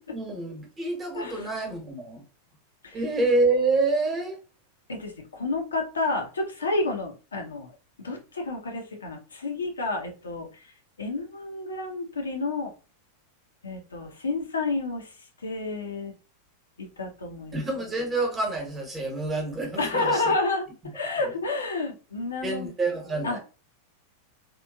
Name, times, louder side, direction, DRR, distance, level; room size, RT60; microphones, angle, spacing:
voice 1, 0.1-2.2 2.9-4.4 17.5-20.3 21.2-21.3 22.4-23.4, right 3 dB, 15° right, 1 dB, 1.1 m, -27 dB
voice 2, 1.1-1.5 2.8-3.0 4.9-7.7 8.0-12.7 13.6-16.1 16.8-17.6 19.8-20.7 20.9-22.7 23.2-23.4, left 3 dB, 70° left, 2 dB, 0.7 m, -30 dB
3.0 x 2.5 x 2.3 m, 0.33 s
figure-of-eight pair, 90°, 0 cm